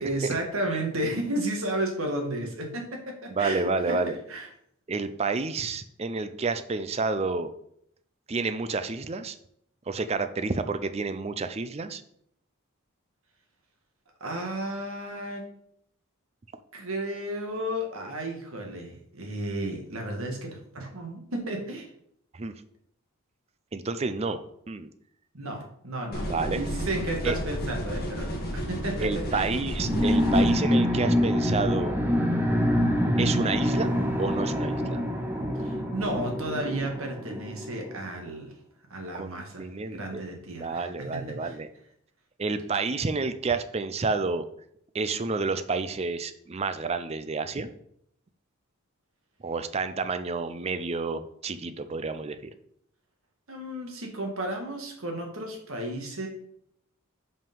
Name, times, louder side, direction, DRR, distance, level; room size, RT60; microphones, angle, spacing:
voice 1, 0.0-4.5 14.2-15.4 16.7-21.9 25.3-26.3 26.6-29.5 35.5-38.5 38.9-39.7 39.9-41.6 53.5-56.3, right 1 dB, 75° right, 2 dB, 1.8 m, -33 dB
voice 2, 3.3-4.2 4.9-7.5 8.3-9.4 9.9-12.0 22.3-22.5 23.7-24.4 24.7-24.9 26.3-26.6 27.2-27.4 29.0-32.0 33.2-35.0 39.1-40.2 40.5-41.7 42.4-44.5 44.9-47.7 49.4-52.4, right 4 dB, 30° right, 10 dB, 0.5 m, -30 dB
sound 1, 26.1-30.5, equal, 45° left, 1.8 m, -32 dB
sound 2, 29.8-38.0, equal, 10° right, 0.8 m, -26 dB
5.5 x 5.3 x 5.4 m, 0.71 s
head